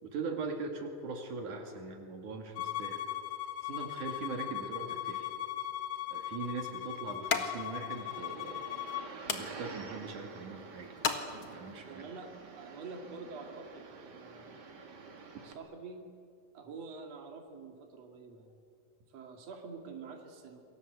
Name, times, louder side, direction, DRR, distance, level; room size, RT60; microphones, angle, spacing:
voice 1, 0.0-3.0 3.6-5.3 6.1-8.7 9.3-11.0 11.3-12.0, right 4 dB, 70° right, 3 dB, 3.8 m, -41 dB
Bowed string instrument, 2.6-9.1, left 13 dB, 75° left, 2.3 m, -39 dB
sound 1, 5.6-11.9, left 6 dB, 45° left, 2.2 m, -40 dB
sound 2, 7.9-15.5, right 4 dB, 35° right, 2.2 m, -49 dB
voice 2, 11.9-14.7 15.4-16.1 16.5-18.6 19.1-20.6, right 4 dB, 55° right, 2 dB, 3.4 m, -47 dB
28.5 x 22.5 x 8.1 m, 2.4 s
omnidirectional pair, 3.6 m